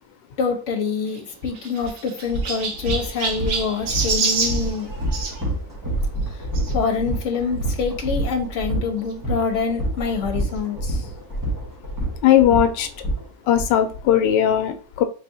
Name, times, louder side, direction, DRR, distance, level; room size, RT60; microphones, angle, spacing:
voice 1, 0.4-4.9 6.7-11.1, left 5 dB, 50° left, 1.3 m, -26 dB
Chirp tweet, 1.0-5.4 6.5-6.7 7.4-7.5 7.7-7.8 9.1-9.2, right 4 dB, 55° right, 0.9 m, -27 dB
sound 1, 1.8-1.9 2.3-13.7, right 1 dB, 15° right, 1.0 m, -27 dB
voice 2, 12.2-12.9 13.5-15.0, left 10 dB, 90° left, 1.2 m, -18 dB
4.3 x 3.4 x 2.7 m
omnidirectional pair, 1.8 m